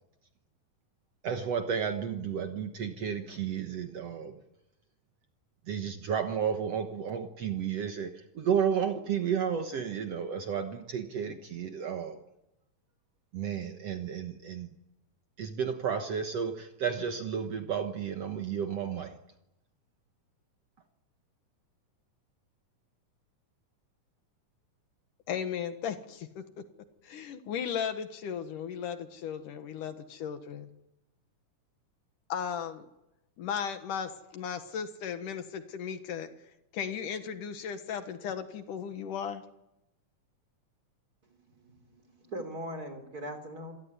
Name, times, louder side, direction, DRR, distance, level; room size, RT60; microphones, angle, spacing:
voice 1, 1.2-4.4 5.7-12.2 13.3-14.7 15.4-19.1, right 7 dB, 60° right, 6 dB, 2.1 m, -32 dB
voice 2, 25.3-26.6 27.0-30.7 32.3-32.9 33.4-36.3 36.7-39.4, left 7 dB, 75° left, 9 dB, 3.0 m, -36 dB
voice 3, 41.9-43.7, equal, 25° right, 7 dB, 4.0 m, -40 dB
27.5 x 17.5 x 9.8 m, 0.91 s
omnidirectional pair, 3.8 m